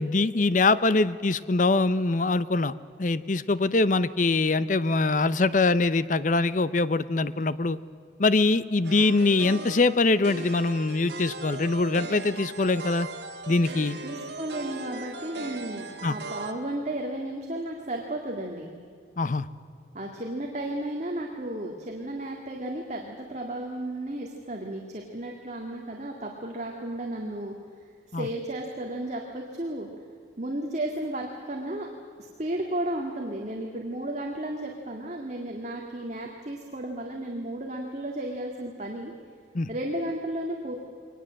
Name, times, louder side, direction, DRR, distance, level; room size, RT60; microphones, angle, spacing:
voice 1, 0.0-2.7 3.0-7.8 8.2-13.1 13.5-14.0 16.0-16.1 19.2-19.5 28.1-28.3 39.5-39.7, left 3 dB, 40° left, 16 dB, 0.6 m, -23 dB
sound 1, 8.8-16.5, right 3 dB, 65° right, 1.8 m, -38 dB
voice 2, 14.0-18.7 19.9-27.5 28.1-29.9 30.4-31.9 32.2-39.1 39.7-40.8, right 1 dB, 40° right, 1 dB, 2.0 m, -33 dB
23.0 x 19.5 x 7.6 m, 2.4 s
head